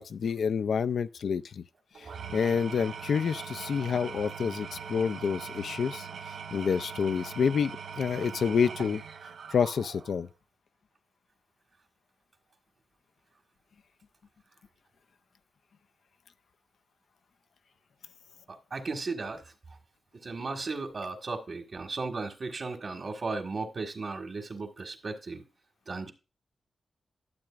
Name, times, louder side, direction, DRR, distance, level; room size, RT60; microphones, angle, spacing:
voice 1, 0.0-1.6 2.3-6.1 6.5-9.0 9.5-10.3, left 6 dB, 85° left, 0.4 m, -28 dB
Engine / Tools, 1.9-10.3, right 7 dB, 85° right, 0.6 m, -41 dB
voice 2, 18.5-19.5 20.1-25.4 25.9-26.1, right 3 dB, 50° right, 1.6 m, -36 dB
12.0 x 7.7 x 2.4 m
wide cardioid pair, 125°, 0 cm